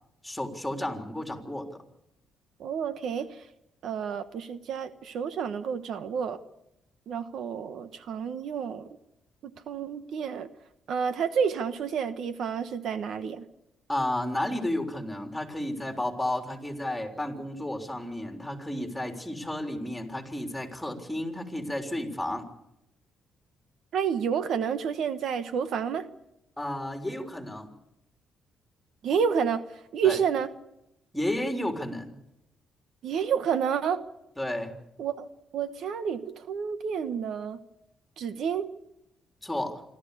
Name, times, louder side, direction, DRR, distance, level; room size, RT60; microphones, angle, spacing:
voice 1, 0.2-1.7 13.9-22.5 26.6-27.7 30.0-30.2 31.1-32.1 34.4-34.7 39.4-39.8, left 1 dB, 5° left, 3 dB, 3.7 m, -32 dB
voice 2, 2.6-3.3 3.8-6.4 7.1-8.9 9.4-10.5 10.9-13.4 23.9-26.1 29.0-29.6 29.9-30.5 33.0-34.0 35.0-35.3 35.5-37.6 38.2-38.7, right 7 dB, 70° right, 11 dB, 1.2 m, -29 dB
26.5 x 13.5 x 8.4 m, 0.86 s
cardioid pair, 90°, 0 cm